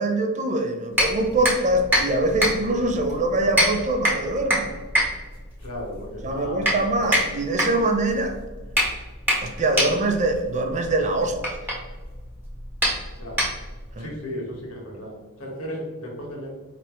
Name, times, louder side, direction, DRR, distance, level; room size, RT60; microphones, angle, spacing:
voice 1, 0.0-4.7 6.2-8.4 9.4-11.4 14.0-14.1, right 2 dB, 35° right, 5 dB, 0.5 m, -23 dB
sound 1, 0.9-13.9, equal, 10° right, 1.2 m, -26 dB
voice 2, 5.6-6.7 13.2-13.4 14.0-16.5, equal, 75° left, -2 dB, 1.4 m, -35 dB
4.7 x 2.9 x 3.0 m, 1.3 s
head